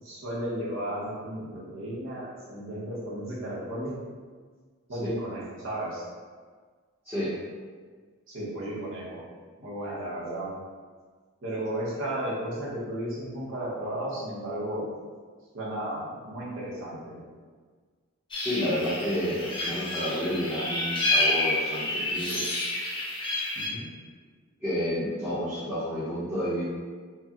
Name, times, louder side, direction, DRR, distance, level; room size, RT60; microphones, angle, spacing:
voice 1, 0.0-4.0 4.9-6.0 8.3-9.2 9.6-10.5 11.4-14.8 15.5-17.2 23.5-23.9, right 1 dB, 60° right, -6 dB, 1.0 m, -34 dB
sound 1, 18.3-23.7, left 2 dB, 20° left, 0.7 m, -29 dB
voice 2, 18.4-22.4 24.6-26.6, equal, 5° right, -16 dB, 0.9 m, -30 dB
4.7 x 2.3 x 2.9 m, 1.6 s
head